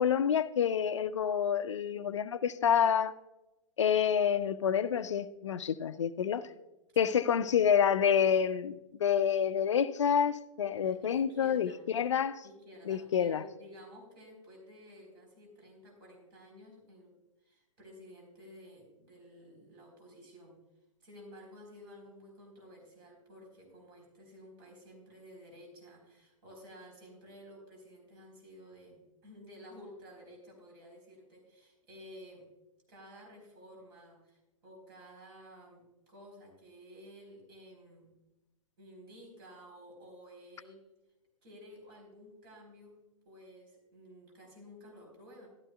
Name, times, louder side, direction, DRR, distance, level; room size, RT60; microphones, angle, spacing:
voice 1, 0.0-3.1 3.8-6.5 7.0-12.4 12.9-13.4, left 8 dB, 60° left, 0.4 m, -28 dB
voice 2, 10.8-11.8 12.4-17.1 17.4-20.6 21.0-32.5 32.9-38.1 38.8-40.8 41.4-43.0 43.2-45.5, equal, 40° right, 3.9 m, -53 dB
13.5 x 12.0 x 2.3 m
figure-of-eight pair, 110°, 17 cm